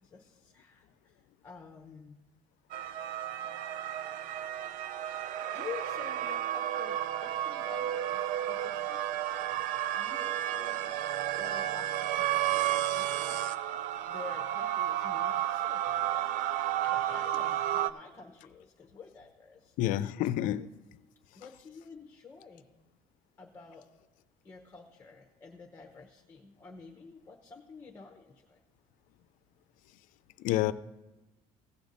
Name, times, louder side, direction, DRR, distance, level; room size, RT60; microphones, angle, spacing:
voice 1, 0.0-2.2 5.5-9.3 9.9-10.9 11.4-13.6 14.1-16.5 16.8-19.7 20.6-20.7 21.3-22.7 23.4-23.8 24.4-28.6, left 5 dB, 15° left, 0.9 m, -49 dB
sound 1, 2.7-17.9, right 12 dB, 65° right, 0.4 m, -32 dB
voice 2, 19.8-20.7 30.4-30.7, left 13 dB, 75° left, 0.5 m, -28 dB
16.5 x 6.9 x 4.0 m
cardioid pair, 160°, 14 cm